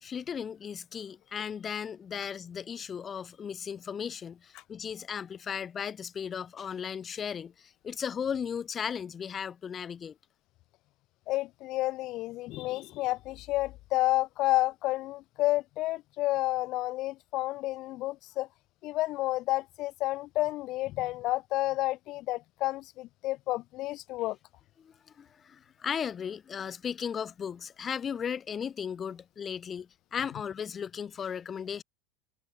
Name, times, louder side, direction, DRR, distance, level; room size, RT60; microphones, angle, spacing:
voice 1, 0.0-10.1 24.8-31.8, left 7 dB, 30° left, 1.4 m, -36 dB
voice 2, 11.3-18.5 18.8-24.4, left 18 dB, 50° left, 0.4 m, -30 dB
figure-of-eight pair, 85°, 0 cm